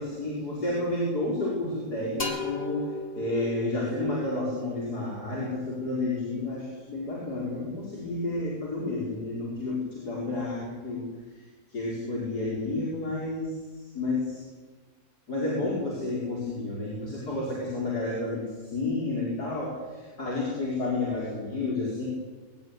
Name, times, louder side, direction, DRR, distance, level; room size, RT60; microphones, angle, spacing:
voice 1, 0.0-11.1 11.3-13.5 13.8-14.4 15.3-22.1, left 2 dB, 80° left, -4 dB, 5.6 m, -31 dB
sound 1, 2.2-5.8, left 3 dB, 35° left, 3.1 m, -38 dB
23.5 x 16.0 x 9.8 m, 1.3 s
omnidirectional pair, 1.7 m